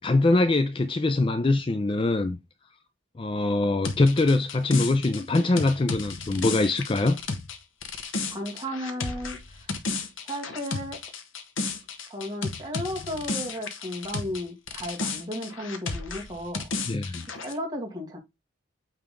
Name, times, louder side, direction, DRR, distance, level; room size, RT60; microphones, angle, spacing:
voice 1, 0.0-2.4 3.2-7.2 16.9-17.3, left 2 dB, 25° left, 0.4 m, -23 dB
sound 1, 3.8-14.4 14.7-17.5, left 4 dB, 75° left, 1.0 m, -33 dB
voice 2, 8.3-9.7 10.2-11.0 12.1-16.7 17.4-18.2, equal, 20° right, 2.1 m, -34 dB
8.6 x 3.4 x 3.7 m
head